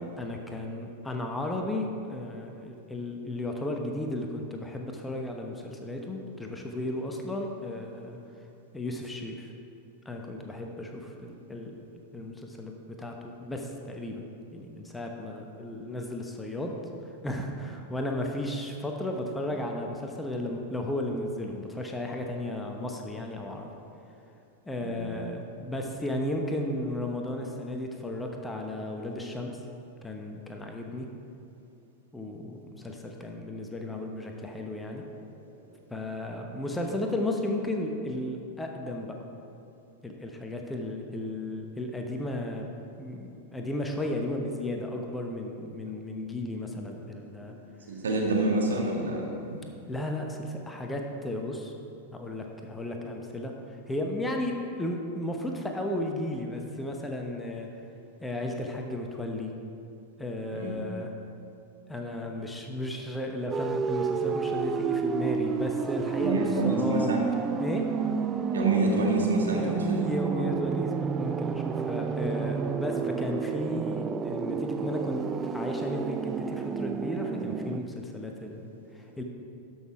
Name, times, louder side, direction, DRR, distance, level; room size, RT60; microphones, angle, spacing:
voice 1, 0.2-8.2 8.7-9.5 10.0-14.3 14.5-16.7 17.2-23.7 24.7-29.6 30.0-31.1 32.1-35.1 35.9-39.2 40.0-42.7 43.0-47.6 49.9-51.7 52.1-57.7 58.2-59.5 60.2-61.1 61.9-67.2 67.6-67.9 69.5-75.2 75.5-79.2, left 1 dB, 10° left, 2 dB, 1.0 m, -34 dB
voice 2, 47.9-49.3 60.5-60.7 66.2-67.2 68.5-70.0 70.3-70.5 72.3-72.5 74.4-74.6, right 2 dB, 70° right, -1 dB, 1.7 m, -28 dB
sound 1, 63.5-77.8, right 6 dB, 20° right, 0.4 m, -30 dB
12.5 x 6.1 x 4.8 m, 2.6 s
figure-of-eight pair, 90°, 0 cm